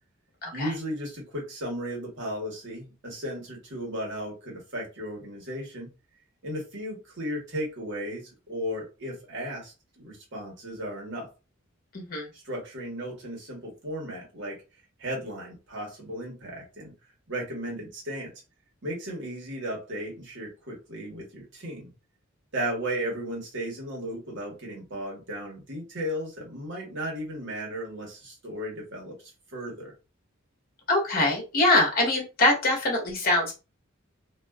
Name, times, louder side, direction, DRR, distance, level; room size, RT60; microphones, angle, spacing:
voice 1, 0.5-5.9 6.4-11.3 12.3-14.6 15.0-16.9 17.3-18.3 18.8-21.9 22.5-29.2 29.5-29.9, equal, 60° right, -2 dB, 1.1 m, -35 dB
voice 2, 11.9-12.3 30.9-33.6, left 2 dB, 45° left, 0 dB, 1.0 m, -23 dB
2.4 x 2.3 x 2.2 m, 0.29 s
head